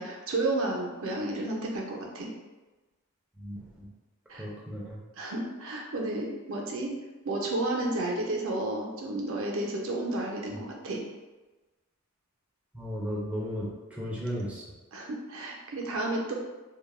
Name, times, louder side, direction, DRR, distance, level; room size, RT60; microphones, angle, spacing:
voice 1, 0.0-2.3 4.3-4.4 5.2-6.9 7.2-11.0 14.9-16.3, right 2 dB, 65° right, 0 dB, 0.5 m, -32 dB
voice 2, 3.4-3.9 4.4-5.0 12.7-14.6, equal, 5° right, -6 dB, 0.3 m, -35 dB
2.2 x 2.0 x 3.0 m, 1.2 s
head